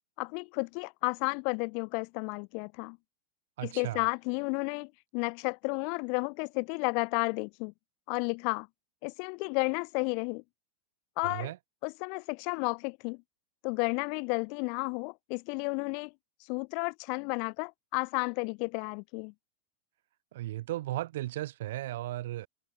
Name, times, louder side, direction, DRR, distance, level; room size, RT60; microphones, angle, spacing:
voice 1, 0.2-3.0 3.6-7.7 8.1-8.7 9.0-10.4 11.2-11.5 11.8-13.2 13.6-16.1 16.5-19.3, left 40 dB or more, 55° left, 0.3 m, -32 dB
voice 2, 3.6-4.1 11.2-11.6 20.3-22.5, right 15 dB, 70° right, 1.5 m, -35 dB
hypercardioid pair, 95°, 0 cm